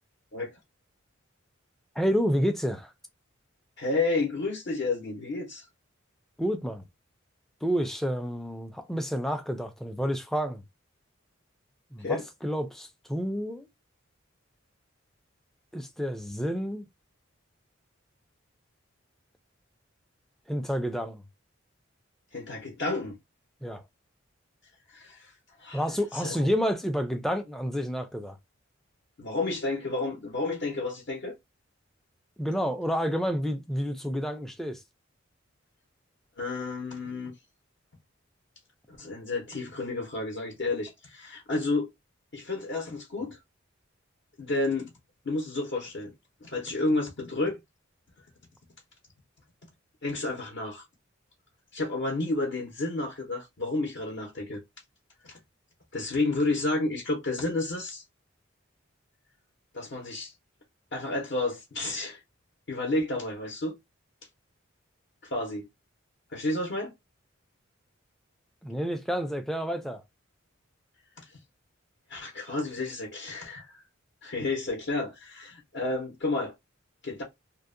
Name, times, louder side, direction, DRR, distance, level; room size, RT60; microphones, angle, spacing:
voice 1, 2.0-2.9 6.4-6.8 7.6-10.6 11.9-13.7 15.7-16.9 20.5-21.2 23.6-23.8 25.7-28.4 32.4-34.8 68.6-70.0, equal, ahead, 0.3 m, -29 dB
voice 2, 3.8-5.7 12.0-12.2 22.3-23.2 24.9-25.3 25.6-25.8 26.1-26.5 29.2-31.3 36.4-37.3 38.9-41.9 42.3-43.4 44.4-44.9 45.2-46.1 46.4-47.6 50.0-50.8 51.7-54.6 55.2-55.4 55.9-58.0 59.7-60.3 60.9-62.2 62.7-63.8 65.2-65.7 66.3-66.9 72.1-73.8 74.2-76.5 77.0-77.2, left 2 dB, 55° left, 0.6 m, -31 dB
2.6 x 2.0 x 2.4 m
head